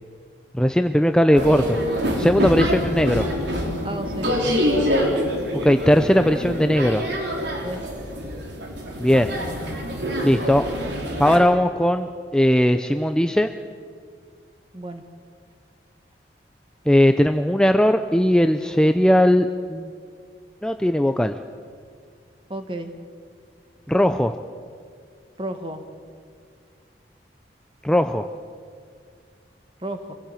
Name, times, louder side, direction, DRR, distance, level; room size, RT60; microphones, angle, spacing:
voice 1, 0.5-1.8 2.2-3.3 5.6-7.0 9.0-9.3 10.2-10.6 11.2-13.5 16.9-19.9 20.6-21.3 23.9-24.3 27.8-28.3, equal, 5° left, 7 dB, 0.5 m, -18 dB
sound 1, 1.4-11.4, equal, 85° right, 3.8 m, -25 dB
voice 2, 3.8-4.3 7.6-7.8 14.7-15.0 22.5-22.9 25.4-25.8 29.8-30.1, right 1 dB, 30° right, 6 dB, 1.8 m, -32 dB
25.0 x 17.0 x 9.0 m, 2.1 s
head